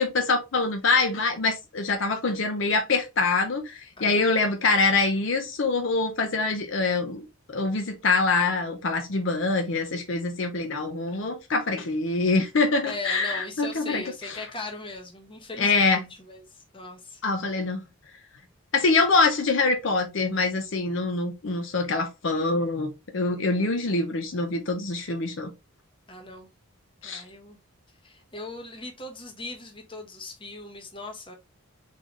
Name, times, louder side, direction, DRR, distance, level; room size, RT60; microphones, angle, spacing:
voice 1, 0.0-14.4 15.6-16.0 17.2-17.8 18.7-22.9 23.1-25.5 27.0-27.2, left 3 dB, 65° left, 0.6 m, -25 dB
voice 2, 4.0-4.3 11.1-11.3 12.8-17.2 23.4-23.7 26.1-26.5 27.0-27.6 28.0-31.3, left 2 dB, 25° left, 1.0 m, -39 dB
3.8 x 3.7 x 3.0 m
head